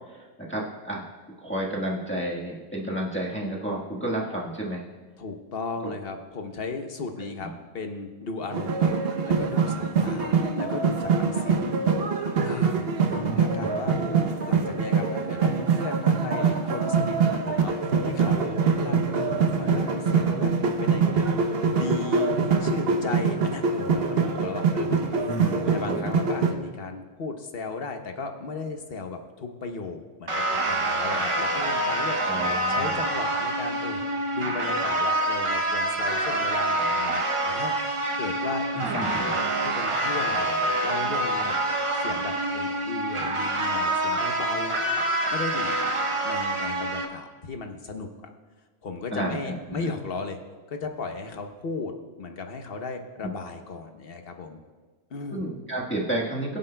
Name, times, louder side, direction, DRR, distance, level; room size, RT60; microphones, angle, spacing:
voice 1, 0.1-1.1 1.4-4.8 7.4-7.5 13.1-14.3 25.3-25.6 25.9-26.2 32.2-33.0 38.7-39.3 49.1-49.9 53.2-53.3 55.3-56.6, right 1 dB, 10° left, -5 dB, 1.4 m, -31 dB
voice 2, 5.2-9.0 9.2-11.7 12.4-13.9 14.5-20.5 20.8-32.4 32.7-34.0 34.3-41.6 42.0-44.8 45.3-45.9 46.2-48.1 48.8-50.4 50.7-54.6 55.1-55.4, left 4 dB, 55° left, 5 dB, 1.1 m, -36 dB
sound 1, 8.5-26.5, right 5 dB, 55° right, 1.0 m, -24 dB
sound 2, 30.3-47.1, right 1 dB, 30° right, 0.7 m, -26 dB
22.5 x 7.8 x 2.3 m, 1.3 s
omnidirectional pair, 1.2 m